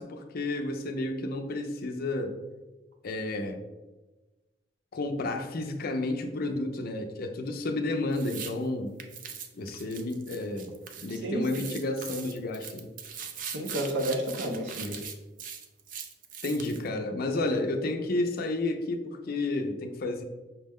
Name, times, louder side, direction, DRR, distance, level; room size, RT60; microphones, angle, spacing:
voice 1, 0.0-2.4 3.0-3.6 4.9-8.9 9.5-10.7 11.0-12.9 16.4-20.2, left 2 dB, 55° left, 5 dB, 0.4 m, -31 dB
sound 1, 8.1-8.5 9.0-11.2 11.4-16.9, right 7 dB, 45° right, 0.4 m, -41 dB
voice 2, 11.1-11.6 13.4-15.0, equal, 75° right, 2 dB, 0.7 m, -31 dB
5.8 x 2.1 x 3.5 m, 1.2 s
head